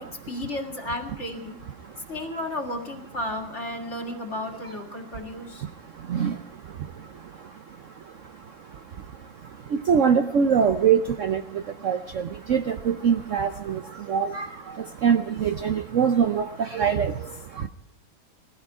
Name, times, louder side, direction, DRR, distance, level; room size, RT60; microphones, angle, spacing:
voice 1, 0.0-1.6 2.1-5.7, left 1 dB, 40° left, 4 dB, 2.3 m, -33 dB
voice 2, 1.8-2.1 5.0-17.7, right 7 dB, 60° right, 8 dB, 0.8 m, -26 dB
19.5 x 15.0 x 4.8 m, 0.84 s
omnidirectional pair, 2.0 m